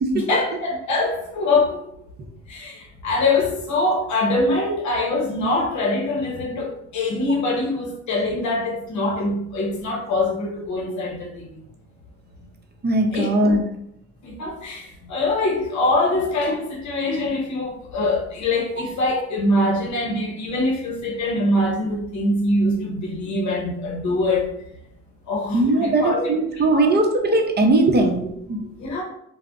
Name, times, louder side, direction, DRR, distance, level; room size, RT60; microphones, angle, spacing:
voice 1, 0.1-1.8 2.5-11.6 13.1-13.3 14.2-24.5 25.3-26.3 26.6-26.8 28.8-29.0, left 2 dB, 70° left, 0 dB, 0.7 m, -23 dB
voice 2, 12.8-13.7 25.5-28.6, right 2 dB, 35° right, 4 dB, 0.6 m, -19 dB
2.4 x 2.0 x 3.5 m, 0.76 s
cardioid pair, 90°, 30 cm